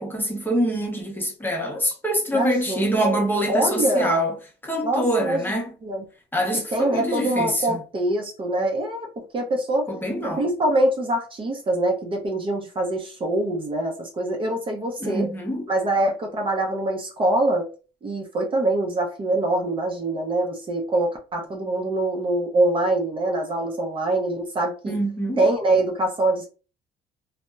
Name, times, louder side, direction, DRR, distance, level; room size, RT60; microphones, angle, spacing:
voice 1, 0.0-4.3 4.6-5.7 6.3-7.8 9.9-10.4 15.0-15.7 24.9-25.4, equal, 10° left, 0.7 m, -25 dB
voice 2, 2.3-3.2 3.5-4.2 4.8-5.4 5.8-6.0 6.7-9.9 10.2-15.3 15.7-17.7 18.0-24.9 25.4-26.5, right 1 dB, 30° right, 0.5 m, -24 dB
2.7 x 2.0 x 2.2 m
cardioid pair, 110°, 17 cm